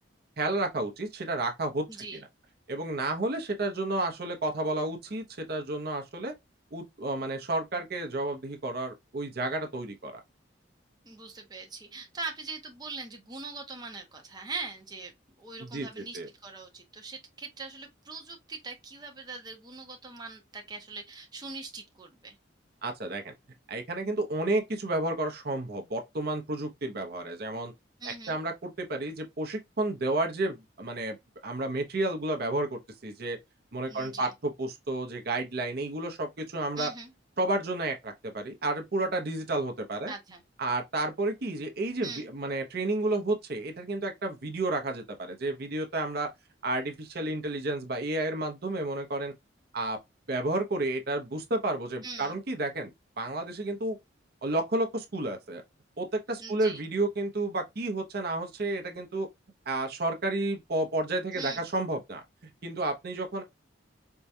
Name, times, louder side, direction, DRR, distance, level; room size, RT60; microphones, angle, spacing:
voice 1, 0.4-1.8 2.7-6.3 6.7-10.2 15.6-16.3 22.8-23.3 23.7-27.7 28.3-31.2 31.4-33.4 33.7-36.9 37.4-40.1 40.6-46.3 46.6-49.3 49.7-50.0 50.3-54.0 54.4-55.6 56.0-59.3 59.7-62.2 62.6-63.4, right 2 dB, 55° right, 0.7 m, -31 dB
voice 2, 1.9-2.2 11.1-15.1 15.4-22.4 28.0-28.4 33.9-34.3 36.8-37.1 40.1-40.4 42.0-42.3 52.0-52.4 56.4-56.8 61.3-61.6, right 3 dB, 20° right, 0.7 m, -41 dB
4.6 x 2.2 x 2.6 m
head